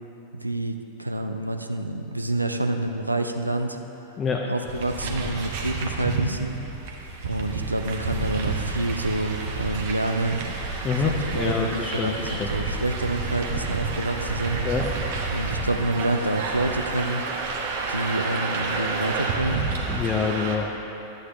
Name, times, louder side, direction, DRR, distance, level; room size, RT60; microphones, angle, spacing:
voice 1, 0.3-3.8 4.5-6.6 7.2-10.4 11.0-14.6 15.3-17.2 17.9-19.7, right 1 dB, 85° right, 6 dB, 0.4 m, -28 dB
voice 2, 4.2-4.5 10.8-12.5 14.6-14.9 19.9-20.7, left 5 dB, 25° left, 0 dB, 0.6 m, -26 dB
sound 1, 4.6-20.6, right 4 dB, 50° right, 1.0 m, -30 dB
11.0 x 8.0 x 3.4 m, 3.0 s
figure-of-eight pair, 90°, 0 cm